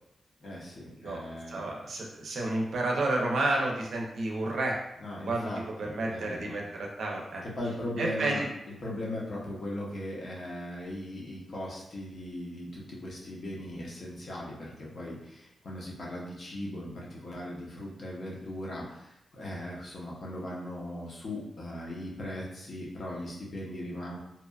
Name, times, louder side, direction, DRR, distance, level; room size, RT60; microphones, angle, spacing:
voice 1, 0.4-1.6 5.0-6.6 7.4-8.5 8.8-24.2, left 1 dB, 55° left, -4 dB, 0.7 m, -38 dB
voice 2, 1.5-4.7 5.3-5.5 5.8-7.4 8.0-8.4, right 2 dB, 75° right, -1 dB, 0.5 m, -30 dB
2.7 x 2.2 x 2.3 m, 0.83 s
wide cardioid pair, 120°, 0 cm